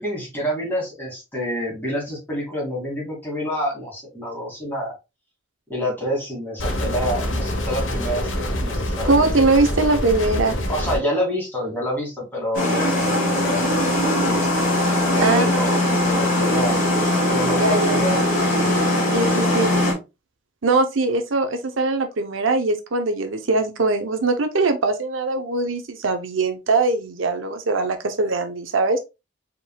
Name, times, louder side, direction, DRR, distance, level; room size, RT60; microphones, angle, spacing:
voice 1, 0.0-4.9 5.7-9.3 10.7-14.6 15.1-16.7 17.3-18.2, equal, 10° left, 2.3 m, -28 dB
sound 1, 6.6-11.0, left 1 dB, 85° left, 1.1 m, -25 dB
voice 2, 9.1-10.6 15.2-15.4 17.6-18.2 19.1-19.7 20.6-29.0, right 3 dB, 85° right, 0.7 m, -21 dB
sound 2, 12.5-19.9, left 1 dB, 45° left, 1.9 m, -20 dB
4.6 x 3.7 x 2.2 m
head